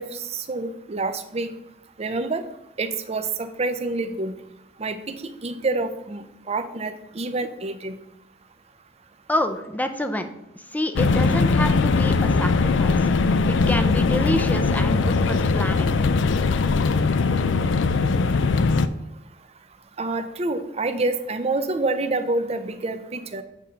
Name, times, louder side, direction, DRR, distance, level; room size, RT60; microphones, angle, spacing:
voice 1, 0.0-1.5 2.0-2.4 2.8-4.3 4.8-8.0 20.0-23.4, right 3 dB, 35° right, 9 dB, 0.6 m, -27 dB
voice 2, 9.3-10.3 10.7-13.1 13.5-15.9, left 1 dB, 10° left, 8 dB, 0.5 m, -27 dB
sound 1, 11.0-18.9, left 4 dB, 80° left, 0.4 m, -20 dB
8.2 x 3.8 x 5.7 m, 0.88 s
head